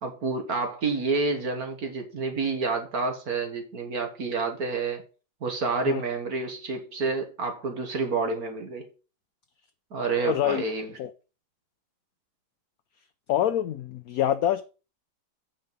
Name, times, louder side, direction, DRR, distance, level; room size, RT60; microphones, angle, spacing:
voice 1, 0.0-5.0 5.4-8.9 9.9-10.9, right 4 dB, 55° right, 1.9 m, -29 dB
voice 2, 10.2-10.6 11.0-11.1 13.3-14.6, left 11 dB, 70° left, 0.9 m, -25 dB
8.7 x 5.7 x 5.3 m
omnidirectional pair, 2.0 m